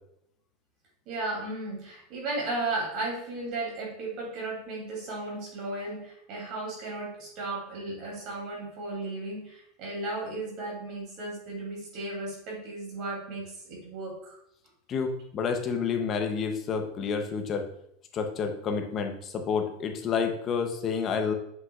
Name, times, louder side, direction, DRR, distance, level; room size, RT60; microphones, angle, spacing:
voice 1, 1.1-14.4, right 2 dB, 35° right, -3 dB, 2.8 m, -35 dB
voice 2, 14.9-17.7 18.1-21.3, left 6 dB, 25° left, 5 dB, 0.7 m, -29 dB
7.5 x 6.3 x 2.4 m, 0.74 s
supercardioid pair, 175°, 0 cm